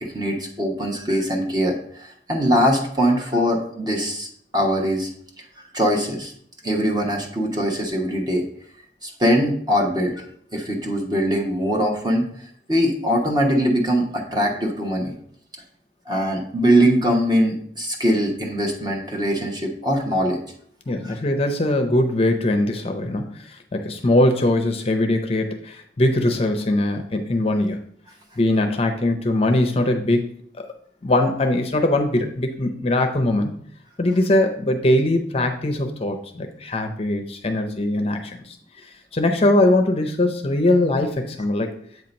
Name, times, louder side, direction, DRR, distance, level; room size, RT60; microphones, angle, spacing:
voice 1, 0.0-4.3 4.5-5.1 5.7-6.3 6.6-8.4 9.0-10.2 10.5-12.2 12.7-15.1 16.1-20.4 21.0-21.1, equal, 25° right, 1 dB, 1.0 m, -22 dB
voice 2, 20.9-27.8 28.4-30.3 30.6-30.7 31.0-33.5 34.0-38.6 39.1-41.7, left 1 dB, 35° left, 5 dB, 0.6 m, -21 dB
7.9 x 2.9 x 5.1 m, 0.63 s
head